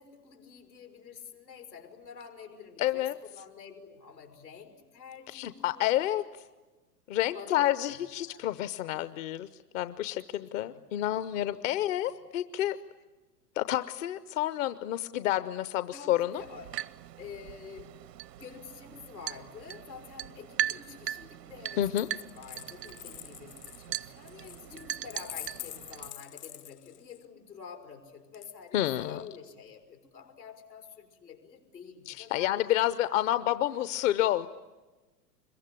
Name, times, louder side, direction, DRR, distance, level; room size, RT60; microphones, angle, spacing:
voice 1, 0.0-6.1 7.3-8.0 8.3-8.8 10.6-11.0 11.4-11.5 12.0-12.1 15.9-16.8 17.2-18.0 18.4-32.6, left 6 dB, 90° left, 3 dB, 5.2 m, -48 dB
voice 2, 2.8-3.1 5.3-6.2 7.1-9.5 9.7-12.8 13.6-16.4 21.8-22.1 28.7-29.2 32.1-34.5, left 13 dB, 50° left, 13 dB, 0.9 m, -29 dB
sound 1, 16.4-26.1, right 12 dB, 75° right, 0.8 m, -39 dB
Coin (dropping), 21.9-27.2 28.3-29.0, left 12 dB, 70° left, 1.4 m, -46 dB
26.0 x 23.0 x 10.0 m, 1.2 s
hypercardioid pair, 105°, 49 cm